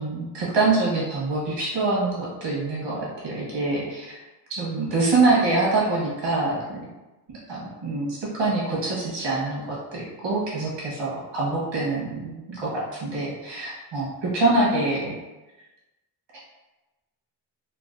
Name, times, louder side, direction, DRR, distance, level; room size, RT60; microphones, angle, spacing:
voice 1, 0.0-4.2 4.5-6.8 7.3-15.2, right 3 dB, 90° right, -6 dB, 1.3 m, -25 dB
3.9 x 2.2 x 2.5 m, 1.1 s
wide cardioid pair, 155°, 43 cm